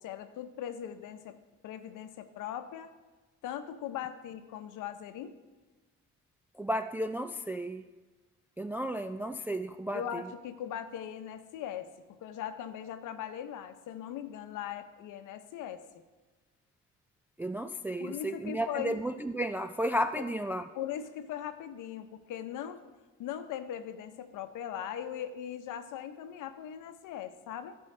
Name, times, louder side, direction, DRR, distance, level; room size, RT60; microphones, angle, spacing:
voice 1, 0.0-1.4 1.6-2.9 3.4-5.4 9.9-16.0 18.0-19.0 20.7-22.8 23.2-27.8, left 10 dB, 90° left, 9 dB, 0.8 m, -40 dB
voice 2, 6.6-7.8 8.6-10.2 17.4-20.7, right 1 dB, 5° right, 8 dB, 0.3 m, -33 dB
15.5 x 5.4 x 3.3 m, 1.3 s
cardioid pair, 90°, 30 cm